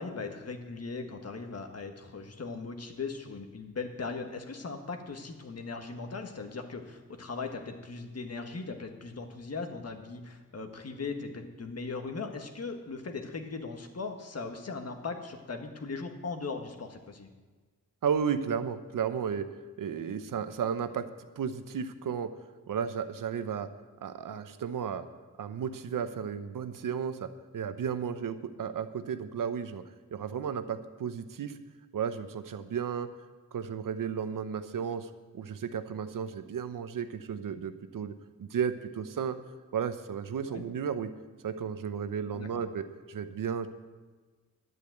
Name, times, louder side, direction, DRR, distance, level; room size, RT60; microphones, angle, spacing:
voice 1, 0.0-17.3 40.5-40.6 42.3-42.6, left 4 dB, 50° left, 5 dB, 1.5 m, -39 dB
voice 2, 18.0-19.5 19.8-21.1 21.4-22.3 22.7-23.7 24.0-25.1 25.4-29.8 30.1-31.6 31.9-33.1 33.5-39.4 39.7-41.1 41.4-43.7, right 7 dB, 80° right, 10 dB, 0.8 m, -33 dB
11.0 x 8.5 x 7.9 m, 1.3 s
wide cardioid pair, 95°, 32 cm